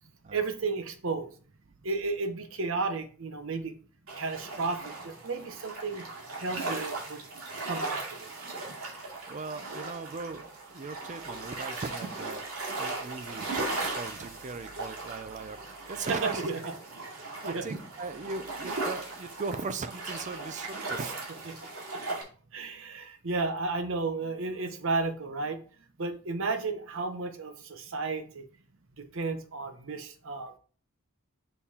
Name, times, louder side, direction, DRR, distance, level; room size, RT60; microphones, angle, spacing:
voice 1, 0.3-1.3 1.8-3.7 4.2-6.0 6.4-7.2 7.6-8.3 16.1-16.6 17.4-17.7 21.5-21.6 21.9-22.2 22.5-25.6 26.0-28.4 29.0-30.6, right 3 dB, 65° right, 8 dB, 0.9 m, -33 dB
sound 1, 4.1-22.2, right 3 dB, 85° right, 2.3 m, -38 dB
voice 2, 9.3-12.4 12.8-15.6 15.9-16.5 17.1-21.1, right 4 dB, 35° right, 11 dB, 0.4 m, -39 dB
6.5 x 5.3 x 2.8 m, 0.41 s
head